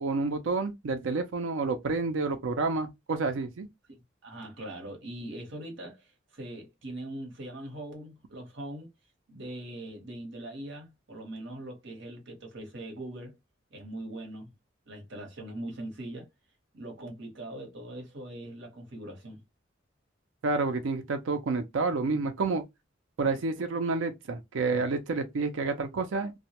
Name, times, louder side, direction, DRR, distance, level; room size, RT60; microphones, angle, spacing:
voice 1, 0.0-3.7 20.4-22.6 23.2-26.3, right 3 dB, 90° right, 0.5 m, -29 dB
voice 2, 3.9-8.9 9.3-13.3 13.7-14.5 14.9-16.3 16.7-19.4, right 1 dB, 65° right, 1.0 m, -41 dB
2.2 x 2.1 x 2.8 m
head